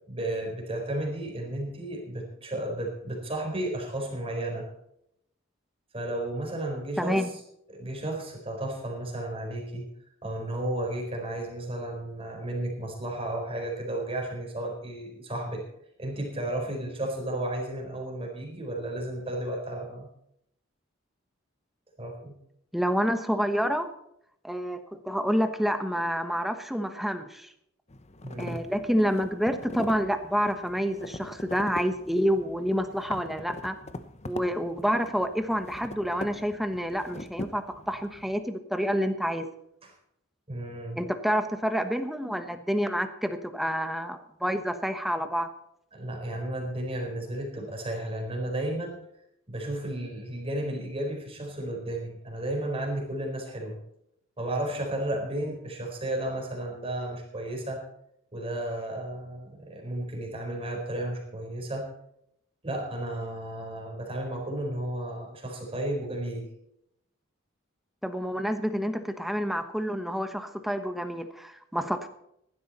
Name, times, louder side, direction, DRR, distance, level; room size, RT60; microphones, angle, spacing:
voice 1, 0.1-4.7 5.9-7.2 7.7-9.8 10.2-15.6 16.0-20.1 22.0-22.4 28.2-28.6 39.8-39.9 40.5-41.0 45.9-49.0 49.5-53.8 54.4-57.8 58.3-61.9 62.6-66.5, right 1 dB, 30° right, 1 dB, 4.4 m, -33 dB
voice 2, 7.0-7.3 22.7-23.9 24.4-27.5 28.4-33.8 34.2-39.5 41.0-45.5 68.0-72.1, equal, ahead, 8 dB, 1.2 m, -28 dB
sound 1, 27.9-38.4, left 2 dB, 35° left, 0.9 m, -42 dB
15.5 x 12.0 x 4.2 m, 0.76 s
head